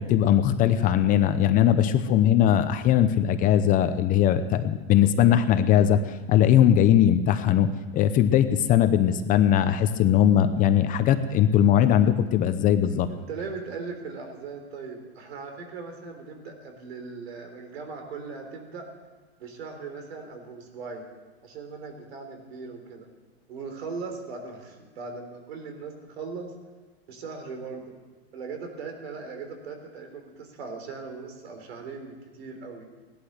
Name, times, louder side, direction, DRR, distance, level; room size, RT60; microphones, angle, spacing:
voice 1, 0.0-13.1, left 10 dB, 25° left, 10 dB, 0.7 m, -20 dB
voice 2, 12.9-18.9 19.4-21.0 21.4-23.1 23.5-26.5 27.1-27.9 28.3-32.9, right 4 dB, 80° right, 5 dB, 3.7 m, -39 dB
17.0 x 11.5 x 6.5 m, 1.4 s
supercardioid pair, 150°, 31 cm